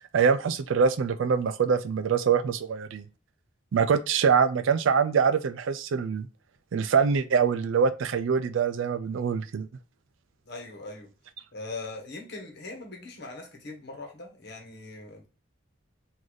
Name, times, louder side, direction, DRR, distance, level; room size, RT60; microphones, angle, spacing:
voice 1, 0.1-3.0 3.7-6.3 6.7-9.7, right 6 dB, 70° right, 0.4 m, -24 dB
voice 2, 10.4-11.1 11.5-15.3, left 3 dB, 50° left, 1.1 m, -41 dB
3.9 x 2.6 x 3.1 m
head